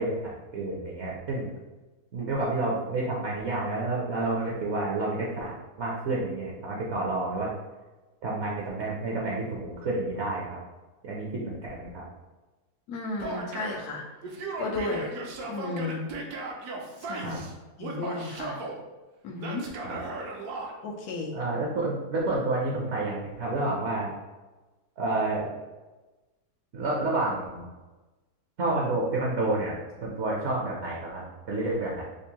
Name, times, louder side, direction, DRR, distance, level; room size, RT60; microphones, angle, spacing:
voice 1, 0.0-1.5 2.1-7.5 8.2-10.5 11.0-12.0 17.2-17.4 19.8-20.0 21.3-24.1 25.0-25.5 26.7-27.7 28.6-32.0, right 2 dB, 60° right, -3 dB, 0.8 m, -29 dB
voice 2, 12.9-14.0 14.6-15.1 15.5-16.1 17.1-17.4 17.8-18.6 19.2-19.7 20.8-21.4, left 2 dB, 90° left, 0 dB, 1.2 m, -33 dB
Male speech man speaking / Yell, 13.2-13.8 14.2-17.5 17.8-18.8 19.4-20.7, right 3 dB, 80° right, 1.1 m, -36 dB
5.3 x 2.1 x 2.8 m, 1.2 s
omnidirectional pair, 1.6 m